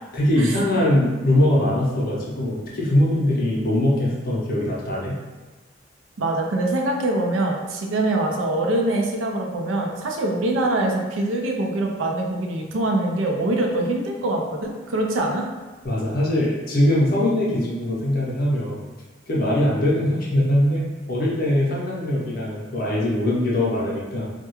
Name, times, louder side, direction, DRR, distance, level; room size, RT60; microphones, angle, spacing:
voice 1, 0.1-5.2 15.8-18.8 19.3-20.8 21.1-24.3, left 1 dB, 50° left, -5 dB, 0.6 m, -21 dB
voice 2, 6.2-15.4, right 2 dB, 75° right, 1 dB, 0.4 m, -24 dB
2.3 x 2.1 x 2.9 m, 1.3 s
head